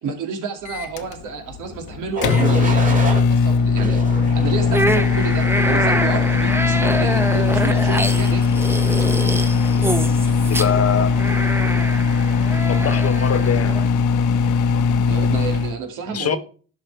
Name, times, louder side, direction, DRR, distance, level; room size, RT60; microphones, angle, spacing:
voice 1, 0.0-4.0 4.3-8.6 15.0-16.4, right 5 dB, 85° right, 4 dB, 2.4 m, -30 dB
Microwave oven, 0.7-15.7, left 5 dB, 80° left, 1.1 m, -19 dB
sound 1, 2.2-3.2 3.8-4.8 5.4-5.8, right 3 dB, 25° right, 2.3 m, -28 dB
sound 2, 4.7-13.9, right 1 dB, 10° right, 1.0 m, -25 dB
voice 2, 10.5-11.1 12.7-13.8 16.1-16.4, left 7 dB, 50° left, 12 dB, 1.2 m, -23 dB
11.5 x 5.6 x 4.6 m, 0.39 s
cardioid pair, 90°, 30 cm